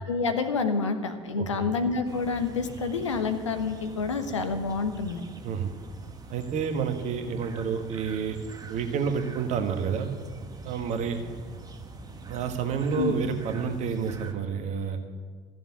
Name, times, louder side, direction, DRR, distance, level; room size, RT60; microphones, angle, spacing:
voice 1, 0.1-5.2 13.0-13.1, left 4 dB, 80° left, 7 dB, 1.1 m, -28 dB
sound 1, 2.0-14.3, right 3 dB, 25° right, 1.5 m, -44 dB
voice 2, 6.3-8.4 8.7-10.1 10.6-11.2 12.3-15.0, right 6 dB, 50° right, 6 dB, 1.5 m, -29 dB
14.0 x 7.5 x 9.0 m, 1.5 s
figure-of-eight pair, 55°, 15 cm